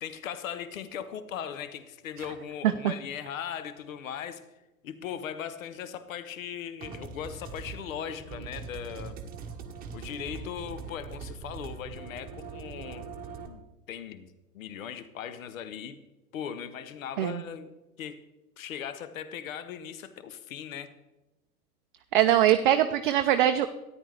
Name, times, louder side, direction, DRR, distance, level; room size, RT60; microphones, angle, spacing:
voice 1, 0.0-4.4 4.8-9.2 9.9-13.1 13.5-14.3 14.5-16.0 16.3-17.7 18.0-18.2 18.6-20.9, left 8 dB, 60° left, 12 dB, 0.9 m, -38 dB
sound 1, 6.8-13.5, right 5 dB, 20° right, 1.2 m, -42 dB
voice 2, 22.1-23.7, right 12 dB, 35° right, 8 dB, 0.5 m, -22 dB
13.5 x 10.0 x 3.3 m, 1.0 s
figure-of-eight pair, 105°, 46 cm